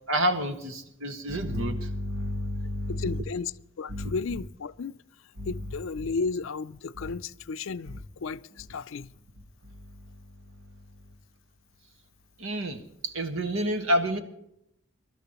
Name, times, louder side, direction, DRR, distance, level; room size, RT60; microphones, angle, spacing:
voice 1, 0.1-3.2 3.9-4.1 5.4-5.5 7.9-8.0 12.4-12.8 13.1-14.2, equal, 90° right, 1.6 m, -29 dB
voice 2, 2.9-3.5 3.8-5.0 5.5-9.1, left 4 dB, 70° left, 0.4 m, -33 dB
23.5 x 12.5 x 3.0 m
head